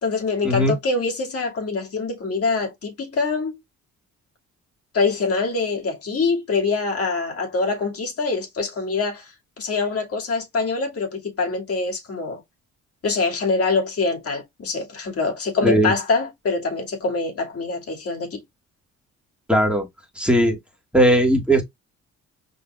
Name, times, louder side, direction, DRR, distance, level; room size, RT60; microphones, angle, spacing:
voice 1, 0.0-3.6 4.9-12.4 13.0-18.4, left 4 dB, 50° left, 2.4 m, -24 dB
voice 2, 15.6-15.9 19.5-19.9 20.2-20.6 20.9-21.6, right 1 dB, 5° right, 2.0 m, -18 dB
5.3 x 4.1 x 2.4 m
cardioid pair, 90°, 30 cm